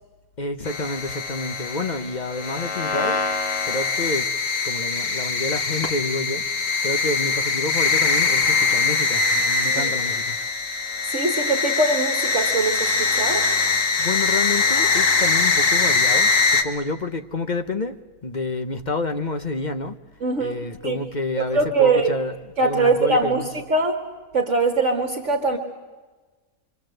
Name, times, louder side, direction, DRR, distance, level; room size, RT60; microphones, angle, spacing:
voice 1, 0.4-3.2 3.6-4.3 4.6-10.4 13.7-20.0 20.4-23.5, left 2 dB, 35° left, 0.8 m, -29 dB
sound 1, 0.7-16.6, left 4 dB, 60° left, 2.0 m, -22 dB
voice 2, 11.1-13.5 20.2-21.0 21.5-22.2 22.6-24.0 24.3-25.6, right 3 dB, 55° right, 1.8 m, -22 dB
27.0 x 24.0 x 7.8 m
omnidirectional pair, 1.6 m